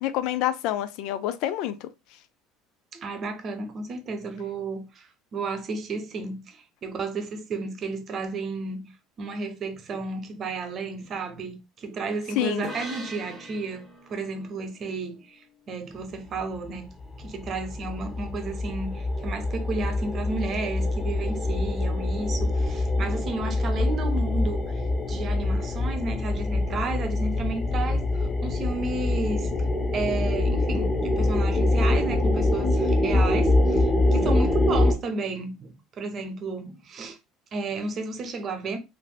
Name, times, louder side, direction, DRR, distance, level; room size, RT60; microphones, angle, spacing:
voice 1, 0.0-1.9 12.4-12.7, left 12 dB, 70° left, 0.3 m, -27 dB
voice 2, 2.9-8.9 9.2-13.8 14.1-16.9 17.2-24.8 25.1-29.5 29.9-37.2 37.5-38.8, right 3 dB, 45° right, 0.7 m, -32 dB
sound 1, 12.6-16.1, equal, 5° left, 1.5 m, -43 dB
sound 2, 16.4-16.5 16.6-34.9, left 2 dB, 20° left, 0.6 m, -25 dB
3.3 x 2.6 x 2.2 m
supercardioid pair, 95°, 0 cm